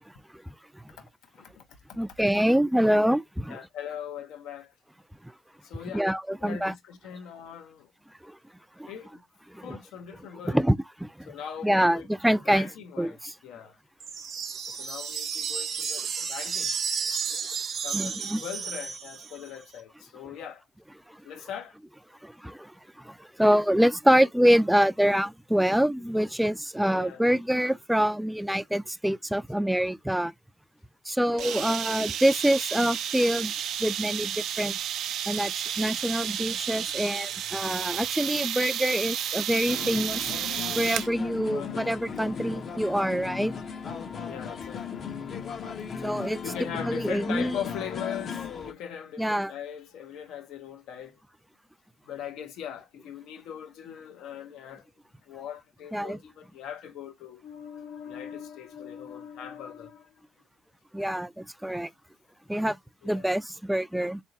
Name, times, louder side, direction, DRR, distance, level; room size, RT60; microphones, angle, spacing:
voice 1, 1.3-1.6 3.5-4.7 5.6-6.1 6.4-7.9 8.9-9.2 9.6-10.6 11.3-13.8 14.8-17.1 17.8-20.6 21.2-21.7 26.9-27.2 31.3-31.8 41.5-42.1 44.3-45.0 46.4-51.2 52.1-54.9 55.3-60.2 63.0-63.3, left 8 dB, 90° left, 0.8 m, -40 dB
voice 2, 2.0-3.6 5.9-6.7 8.2-8.4 8.8-8.9 9.5-9.8 10.5-11.3 11.6-12.7 13.0-13.3 17.9-18.4 21.1-21.2 22.2-30.3 31.1-33.5 33.8-34.8 35.3-40.3 40.8-43.5 46.0-46.4 46.8-47.6 49.2-49.5 55.9-56.2 60.9-61.9 62.5-62.8 63.0-64.2, equal, 5° right, 0.3 m, -25 dB
sound 1, 14.0-19.5, right 6 dB, 60° right, 0.8 m, -32 dB
sound 2, 31.4-41.1, right 10 dB, 75° right, 0.4 m, -32 dB
sound 3, 39.7-48.7, left 6 dB, 55° left, 0.7 m, -36 dB
3.8 x 3.4 x 2.7 m
cardioid pair, 90°, 0 cm